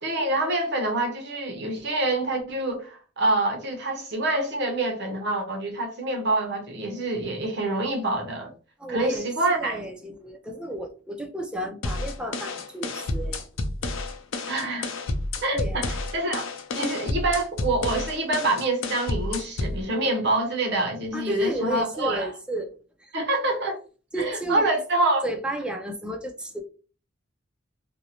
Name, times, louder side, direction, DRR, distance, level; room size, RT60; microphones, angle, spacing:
voice 1, 0.0-8.5 8.9-9.8 14.5-14.9 15.4-16.5 16.7-22.3 23.1-23.8 24.2-25.3, right 2 dB, 60° right, 0.7 m, -26 dB
voice 2, 8.8-13.5 15.5-15.9 21.1-22.7 23.0-23.1 24.1-24.6 25.2-26.6, right 1 dB, 5° right, 0.4 m, -32 dB
sound 1, 11.8-19.8, left 2 dB, 85° left, 0.5 m, -30 dB
2.6 x 2.0 x 2.8 m
head